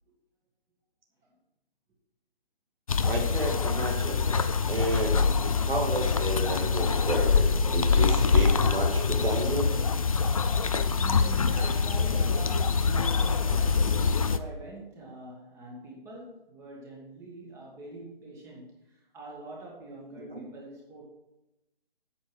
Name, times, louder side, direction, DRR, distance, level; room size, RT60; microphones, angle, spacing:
sound 1, 2.9-14.4, left 5 dB, 40° left, 0.4 m, -25 dB
voice 1, 3.0-4.3 4.6-5.2 5.7-9.7 20.2-20.4, right 1 dB, 75° right, 1 dB, 2.1 m, -31 dB
voice 2, 11.0-21.0, right 1 dB, 10° right, -2 dB, 1.6 m, -44 dB
8.6 x 7.9 x 4.9 m, 0.92 s
figure-of-eight pair, 145°, 29 cm